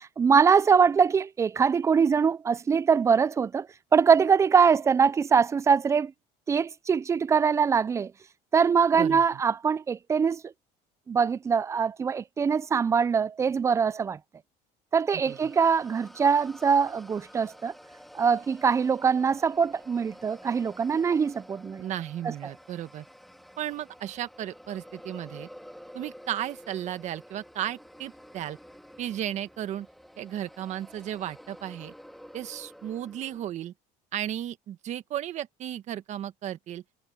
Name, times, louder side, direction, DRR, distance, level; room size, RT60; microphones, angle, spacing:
voice 1, 0.0-3.7 3.9-6.1 6.5-8.1 8.5-10.5 11.1-14.2 14.9-17.7 18.1-21.8 22.2-22.5, right 6 dB, 20° right, 0.4 m, -23 dB
sound 1, 15.2-33.5, equal, ahead, 1.9 m, -50 dB
voice 2, 21.8-23.0 23.6-25.5 25.9-28.6 29.0-29.9 30.2-31.9 32.3-33.7 34.1-36.8, right 11 dB, 50° right, 1.6 m, -34 dB
cardioid pair, 135°, 16 cm